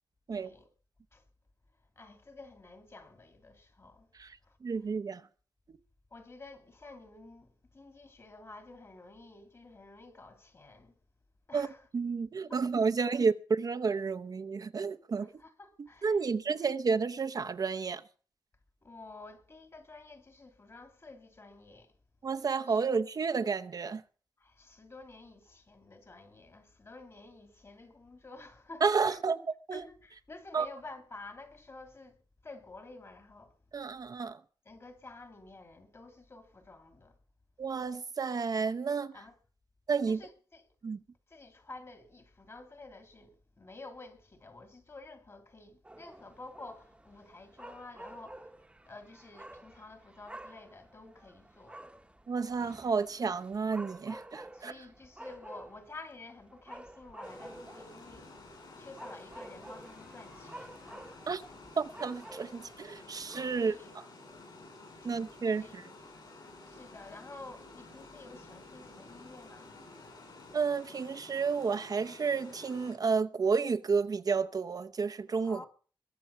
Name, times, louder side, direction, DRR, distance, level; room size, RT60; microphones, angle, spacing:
voice 1, 0.3-0.7 1.1-1.2 2.0-4.1 4.4-4.6 6.1-10.9 11.5-11.8 12.5-12.6 13.0-13.1 15.2-16.3 16.5-16.7 18.8-21.9 22.7-22.8 24.4-29.2 29.7-32.2 32.4-33.6 34.6-37.2 39.1-39.3 40.1-40.7 41.3-51.8 54.5-58.4 58.8-61.3 63.5-63.9 65.0-65.1 65.6-65.8 66.7-69.7 75.4-75.7, left 3 dB, 35° left, 2.6 m, -51 dB
voice 2, 4.6-5.2 11.5-15.3 16.0-18.0 22.2-24.0 28.8-29.4 29.7-29.8 30.5-30.7 33.7-34.4 37.6-39.1 39.9-40.2 40.8-41.0 52.3-54.7 61.3-61.4 61.8-63.8 65.0-65.8 70.5-75.6, right 5 dB, 50° right, 0.8 m, -31 dB
sound 1, 45.8-63.9, right 1 dB, 15° right, 1.1 m, -51 dB
Water, 57.2-72.9, left 2 dB, 65° left, 7.8 m, -52 dB
22.0 x 7.7 x 5.7 m
wide cardioid pair, 125°, 8 cm